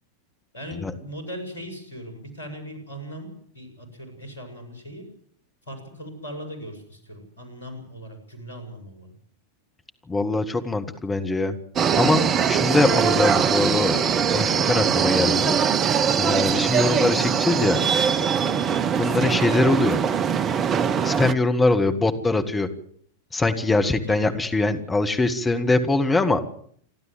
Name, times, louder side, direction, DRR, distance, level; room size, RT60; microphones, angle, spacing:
voice 1, 0.5-5.1 5.7-9.1 23.8-24.3, equal, 70° left, 7 dB, 6.8 m, -39 dB
voice 2, 10.1-11.6 12.0-15.6 16.2-17.8 18.9-20.0 21.0-22.7 23.3-26.4, left 2 dB, 15° left, 6 dB, 1.9 m, -22 dB
sound 1, 11.8-21.3, right 7 dB, 30° right, 0.9 m, -22 dB
28.5 x 12.0 x 7.8 m, 0.62 s
figure-of-eight pair, 90°, 0 cm